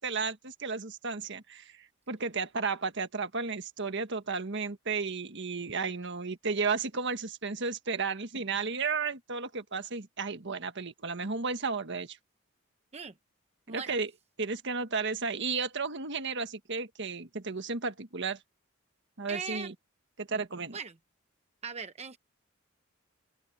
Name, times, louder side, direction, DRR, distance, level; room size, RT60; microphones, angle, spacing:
voice 1, 0.0-12.2 13.7-14.1 14.4-18.4 19.2-19.7 20.2-20.8, right 4 dB, 60° right, 1.5 m, -33 dB
voice 2, 19.3-19.7 20.7-20.9 21.6-22.2, right 5 dB, 30° right, 0.9 m, -39 dB
open air
head